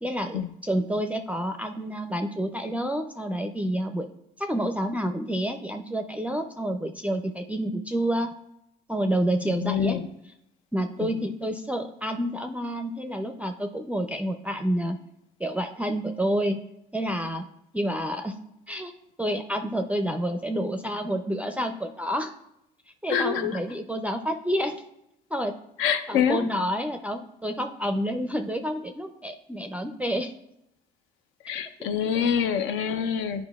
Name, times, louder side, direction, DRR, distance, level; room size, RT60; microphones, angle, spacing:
voice 1, 0.0-4.1 4.4-8.3 8.9-10.0 10.7-15.0 15.4-16.6 16.9-17.5 17.7-18.4 18.7-18.9 19.2-22.3 23.0-24.7 25.3-25.5 26.1-30.3, equal, 5° right, 5 dB, 0.4 m, -29 dB
voice 2, 9.5-10.1 11.0-11.2 23.1-23.6 25.8-26.4 31.4-33.4, left 8 dB, 75° left, 9 dB, 0.6 m, -26 dB
9.7 x 4.6 x 2.3 m, 0.82 s
supercardioid pair, 70°, 21 cm